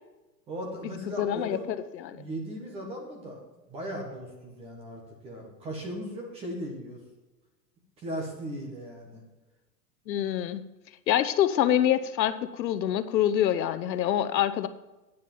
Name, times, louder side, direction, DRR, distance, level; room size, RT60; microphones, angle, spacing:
voice 1, 0.5-1.6 2.1-3.4 3.7-7.0 8.0-9.2, equal, 10° right, 2 dB, 1.4 m, -37 dB
voice 2, 1.2-1.6 2.0-2.2 10.1-10.6 11.1-14.7, left 11 dB, 90° left, 12 dB, 1.0 m, -25 dB
9.6 x 6.7 x 7.0 m, 1.1 s
supercardioid pair, 175°, 50 cm